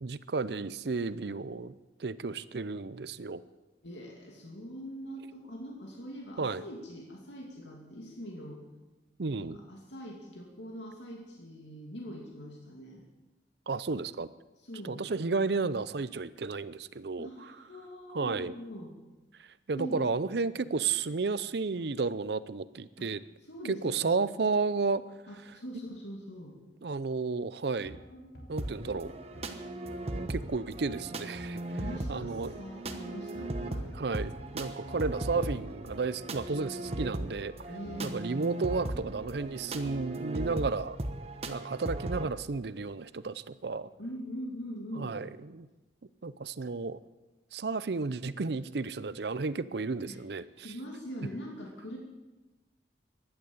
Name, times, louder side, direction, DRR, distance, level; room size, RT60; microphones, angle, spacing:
voice 1, 0.0-1.7 2.0-3.4 6.4-6.6 9.2-9.6 13.7-14.3 14.8-17.6 18.1-18.5 19.4-23.2 23.6-25.0 26.8-28.0 28.5-29.1 30.3-31.6 32.1-32.6 33.9-37.5 38.0-41.0 41.5-43.9 45.0-45.7 46.2-47.0 47.5-50.7, right 4 dB, 65° right, 16 dB, 0.6 m, -32 dB
voice 2, 3.8-8.6 9.4-13.0 14.6-15.1 17.2-19.0 19.7-20.0 20.6-20.7 23.0-23.1 23.5-24.1 25.3-26.6 31.7-33.9 37.7-38.3 44.0-45.1 50.1-50.2 50.6-52.0, equal, 80° left, -1 dB, 2.6 m, -42 dB
sound 1, 27.8-40.1, equal, 65° left, 3.3 m, -50 dB
sound 2, 28.6-42.3, right 1 dB, 35° right, 1.1 m, -38 dB
15.5 x 11.0 x 7.9 m, 1.1 s
head